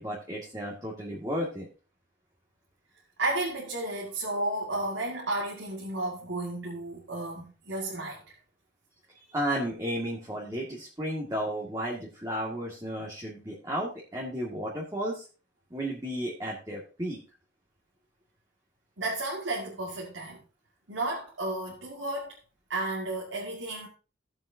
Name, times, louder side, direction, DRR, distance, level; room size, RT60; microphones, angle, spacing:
voice 1, 0.0-1.7 9.3-15.3 15.7-17.2, equal, 20° right, 2.0 m, -33 dB
voice 2, 3.2-8.2 19.0-20.4 20.9-22.4 22.7-23.9, right 2 dB, 80° right, 2.1 m, -32 dB
17.0 x 7.2 x 2.8 m
head